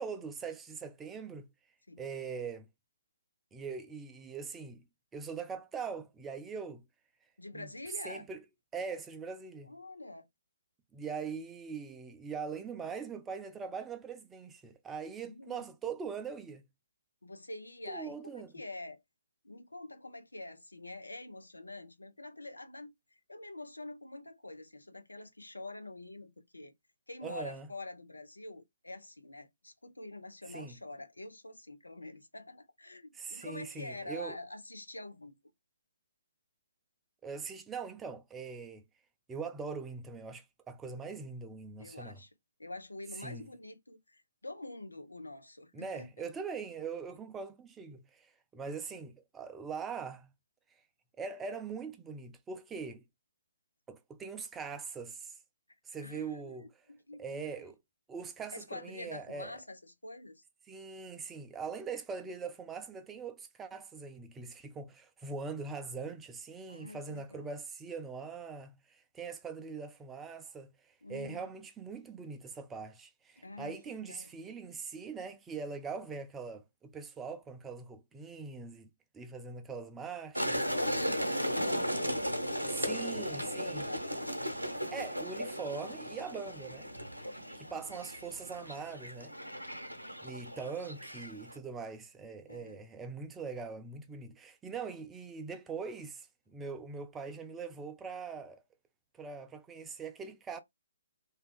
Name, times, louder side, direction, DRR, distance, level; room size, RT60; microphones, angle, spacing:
voice 1, 0.0-1.5 2.0-2.7 3.5-4.8 5.1-6.8 7.5-7.7 8.0-8.4 8.7-9.7 10.9-16.6 17.9-18.5 27.2-27.7 30.5-30.7 33.1-34.4 37.2-38.8 39.3-42.2 43.2-43.5 45.7-50.3 51.2-53.0 53.9-55.4 55.9-56.7 57.2-57.8 58.1-59.5 60.7-78.9 79.1-80.6 82.7-83.8 84.9-86.9 87.5-89.3 90.2-98.6 99.2-100.6, right 5 dB, 10° right, 0.3 m, -42 dB
voice 2, 7.4-8.3 9.6-10.3 15.3-15.7 17.2-19.0 19.4-26.7 27.1-35.4 41.8-42.3 42.6-46.3 56.0-57.6 58.5-60.4 66.7-67.5 71.0-71.5 73.4-74.3 80.4-82.3 82.9-84.0 87.1-87.8 92.5-92.8, left 2 dB, 75° left, 0.5 m, -46 dB
sound 1, 80.3-91.6, equal, 85° right, 0.7 m, -36 dB
2.6 x 2.3 x 2.2 m
figure-of-eight pair, 135°, 0 cm